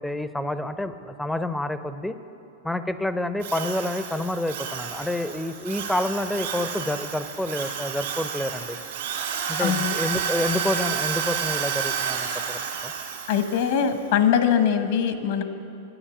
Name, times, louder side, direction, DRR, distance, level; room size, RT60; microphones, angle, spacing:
voice 1, 0.0-2.2 2.6-8.8 9.5-12.9, left 1 dB, 5° left, 11 dB, 0.5 m, -28 dB
Drill, 3.4-13.8, right 7 dB, 75° right, 2.2 m, -30 dB
voice 2, 9.6-10.0 13.3-15.4, left 8 dB, 60° left, 8 dB, 1.1 m, -22 dB
10.0 x 9.7 x 7.2 m, 2.7 s
hypercardioid pair, 130°, 0 cm